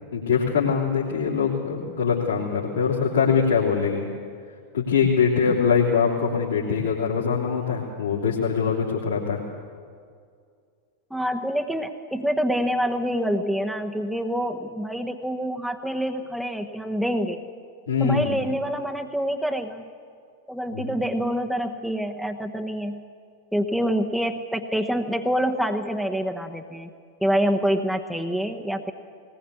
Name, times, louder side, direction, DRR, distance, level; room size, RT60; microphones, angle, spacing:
voice 1, 0.1-4.1 4.7-9.4 17.9-18.4 20.7-20.9, left 6 dB, 70° left, -6 dB, 3.3 m, -23 dB
voice 2, 11.1-17.4 18.0-19.8 20.5-23.0 23.5-26.9 27.2-28.9, equal, ahead, 3 dB, 1.1 m, -26 dB
20.0 x 20.0 x 8.4 m, 2.2 s
figure-of-eight pair, 90°, 0 cm